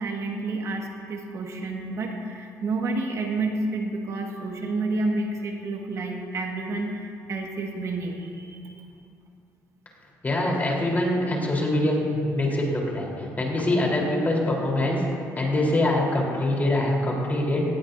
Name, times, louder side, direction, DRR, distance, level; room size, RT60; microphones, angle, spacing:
voice 1, 0.0-8.8, right 2 dB, 55° right, 1 dB, 1.8 m, -30 dB
voice 2, 10.2-15.1 15.4-17.6, left 1 dB, 25° left, -2 dB, 3.8 m, -24 dB
18.5 x 15.0 x 2.7 m, 2.5 s
cardioid pair, 90°, 6 cm